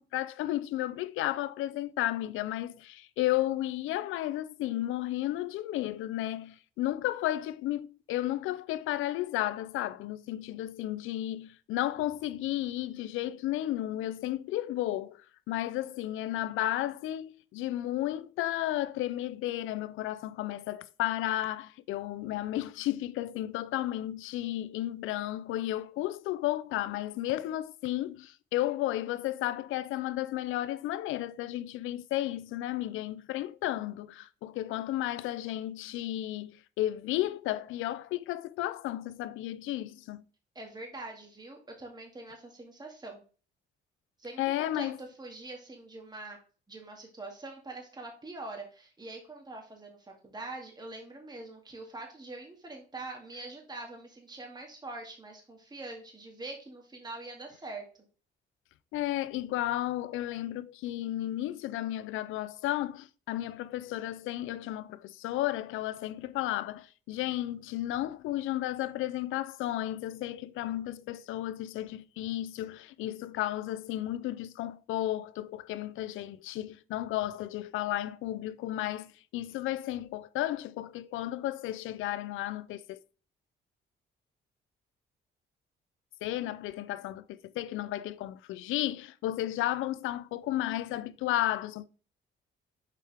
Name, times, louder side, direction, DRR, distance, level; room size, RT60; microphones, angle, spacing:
voice 1, 0.0-15.2 15.5-40.2 44.4-45.0 58.9-83.0 86.2-91.9, left 14 dB, 90° left, 0.5 m, -33 dB
voice 2, 40.6-43.2 44.2-46.4 46.7-57.9, right 2 dB, 20° right, 2.0 m, -44 dB
6.9 x 4.5 x 3.4 m
cardioid pair, 90°, 20 cm